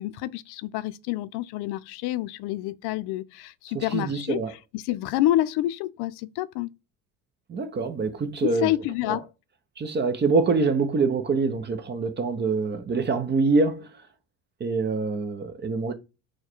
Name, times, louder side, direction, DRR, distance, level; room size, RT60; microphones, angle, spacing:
voice 1, 0.0-6.7 8.4-9.3, left 14 dB, 70° left, 0.5 m, -28 dB
voice 2, 3.7-4.5 7.5-8.7 9.1-9.2 9.8-13.9 14.6-15.9, right 4 dB, 25° right, 0.7 m, -25 dB
4.6 x 2.3 x 4.4 m
cardioid pair, 110°, 41 cm